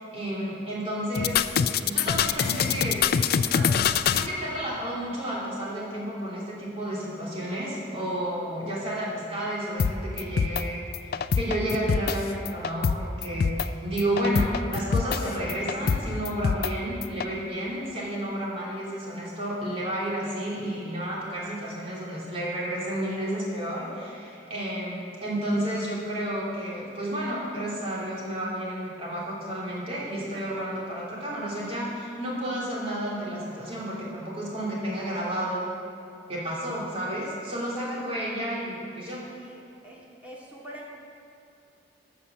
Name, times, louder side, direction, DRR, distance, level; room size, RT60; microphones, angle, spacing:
voice 1, 0.0-1.4 1.7-3.0 3.5-3.7 4.1-35.7 36.3-39.2, right 1 dB, 35° right, -6 dB, 3.1 m, -31 dB
sound 1, 1.1-4.3 9.8-9.9 10.2-10.6 10.9-12.2 12.4-12.9 13.2-13.7 14.0-15.2 15.5-16.7 17.0-17.2, left 7 dB, 60° left, 0.4 m, -24 dB
voice 2, 37.8-38.2 39.3-40.9, right 1 dB, 10° right, -5 dB, 2.3 m, -42 dB
13.0 x 6.9 x 7.0 m, 2.6 s
head